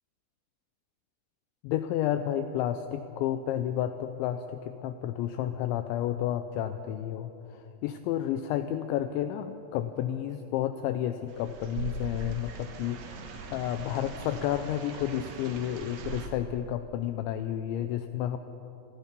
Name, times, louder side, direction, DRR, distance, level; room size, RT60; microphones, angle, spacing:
voice 1, 1.6-18.4, left 11 dB, 80° left, 9 dB, 2.8 m, -31 dB
sound 1, 11.3-16.3, right 4 dB, 60° right, 2.7 m, -40 dB
28.5 x 19.5 x 5.3 m, 3.0 s
omnidirectional pair, 5.7 m